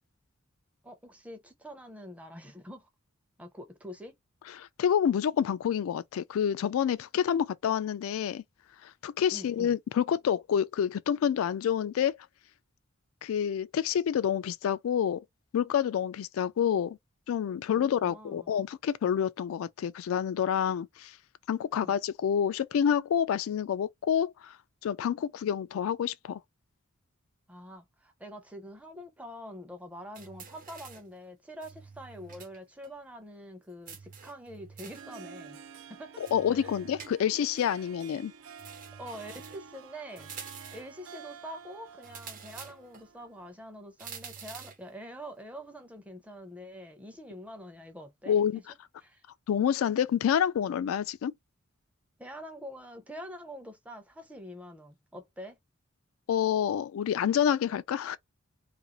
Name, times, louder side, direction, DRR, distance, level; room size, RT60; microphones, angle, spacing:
voice 1, 0.8-2.9 3.4-4.2 9.3-9.8 17.7-18.6 21.8-22.0 27.5-36.2 36.6-36.8 37.8-37.9 38.9-40.3 40.7-48.7 49.0-49.2 52.2-55.6, equal, 5° right, 0.5 m, -45 dB
voice 2, 4.6-8.4 8.8-12.2 13.2-15.2 15.5-17.0 17.3-21.2 21.5-24.6 24.8-26.4 36.3-38.3 48.3-48.5 49.5-51.3 56.3-58.2, left 8 dB, 75° left, 0.3 m, -28 dB
sound 1, 30.1-31.1 31.6-32.6 32.8-32.9 33.9-35.1 36.3-37.5 38.6-39.7 40.2-41.0 42.0-43.1 44.0-44.9, right 6 dB, 40° right, 0.7 m, -47 dB
Harp, 34.8-43.5, right 6 dB, 70° right, 0.4 m, -50 dB
2.5 x 2.3 x 2.9 m
head